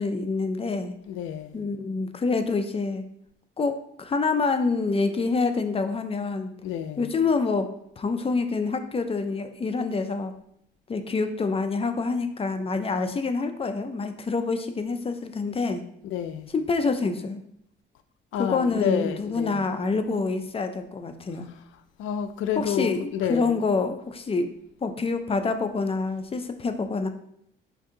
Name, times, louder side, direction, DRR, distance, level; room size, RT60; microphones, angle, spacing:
voice 1, 0.0-0.9 1.5-3.0 3.6-6.5 7.0-7.7 8.0-10.3 10.9-15.8 16.5-17.4 18.4-21.5 22.5-24.5 24.8-27.1, left 4 dB, 30° left, 0.5 m, -26 dB
voice 2, 1.1-1.6 6.6-7.1 16.0-16.5 18.3-19.6 22.0-23.6, left 9 dB, 80° left, 0.4 m, -29 dB
4.6 x 2.7 x 3.8 m
cardioid pair, 90°, 20 cm